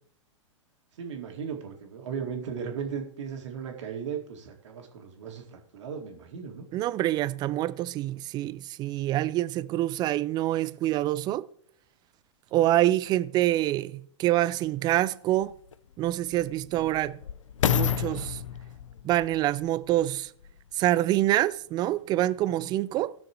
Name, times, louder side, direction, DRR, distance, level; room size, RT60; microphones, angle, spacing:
voice 1, 0.9-6.7 12.6-12.7 16.6-16.9 22.5-22.7, right 7 dB, 65° right, 2.2 m, -37 dB
voice 2, 6.7-11.4 12.5-15.5 16.0-17.2 17.7-18.4 19.0-20.3 20.8-23.1, right 14 dB, 25° right, 0.4 m, -26 dB
sound 1, 14.6-14.7 15.4-20.7 21.4-21.5, left 9 dB, 75° left, 0.5 m, -31 dB
19.0 x 6.4 x 3.0 m
hypercardioid pair, 110°, 16 cm